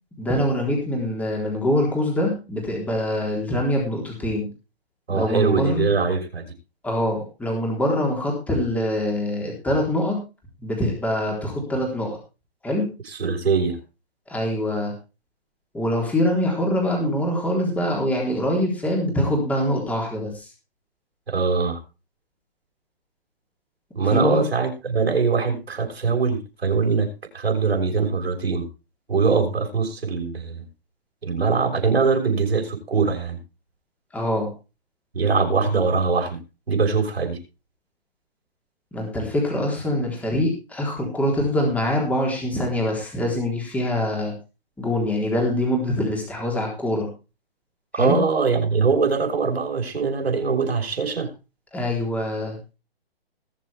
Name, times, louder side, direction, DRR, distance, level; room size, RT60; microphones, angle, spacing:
voice 1, 0.2-4.5 5.1-5.9 6.8-10.2 10.6-12.2 12.6-12.9 14.3-14.9 15.7-20.5 24.0-24.4 34.1-34.5 38.9-44.3 44.8-47.1 47.9-48.2 51.7-52.6, left 1 dB, 5° left, 0 dB, 3.8 m, -24 dB
voice 2, 5.1-6.5 13.1-13.8 21.3-21.8 23.9-27.1 27.3-28.6 29.1-30.7 31.2-33.4 35.1-36.4 36.7-37.4 47.9-51.3, right 5 dB, 80° right, 2 dB, 5.8 m, -22 dB
21.0 x 7.5 x 3.5 m, 0.30 s
hypercardioid pair, 150°, 31 cm